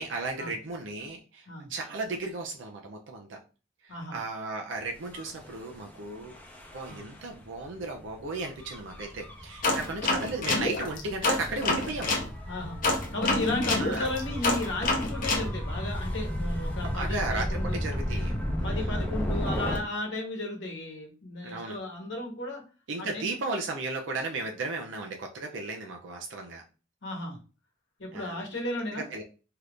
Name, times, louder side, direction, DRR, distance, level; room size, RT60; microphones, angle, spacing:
voice 1, 0.0-3.4 3.8-6.4 6.7-12.2 13.8-14.1 16.8-18.3 18.6-19.1 21.4-21.8 22.9-26.6 28.1-28.4 29.0-29.2, right 3 dB, 70° right, 2 dB, 0.5 m, -35 dB
Gull seagull / Waves surf / Siren, 5.0-19.8, equal, 10° left, 0.5 m, -34 dB
sound 1, 9.6-12.3 12.8-15.5, left 2 dB, 45° left, 0.7 m, -27 dB
voice 2, 12.5-12.8 13.1-17.8 18.6-22.6 23.0-23.3 27.0-27.4 28.0-29.0, left 1 dB, 70° left, 2 dB, 1.0 m, -34 dB
2.8 x 2.4 x 3.4 m, 0.34 s
head